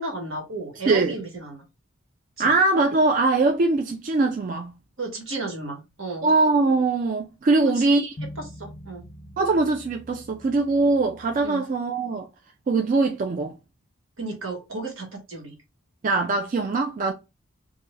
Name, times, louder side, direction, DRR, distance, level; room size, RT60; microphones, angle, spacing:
voice 1, 0.0-1.7 2.4-2.5 5.0-6.3 7.5-8.0 8.4-9.0 11.4-11.6 14.2-15.5, right 2 dB, 75° right, 1.3 m, -33 dB
voice 2, 2.4-4.7 6.2-8.1 9.4-12.3 12.7-13.6 16.0-17.1, right 3 dB, 40° right, 0.3 m, -22 dB
sound 1, 8.2-11.4, equal, 35° left, 0.5 m, -42 dB
2.6 x 2.4 x 3.0 m
head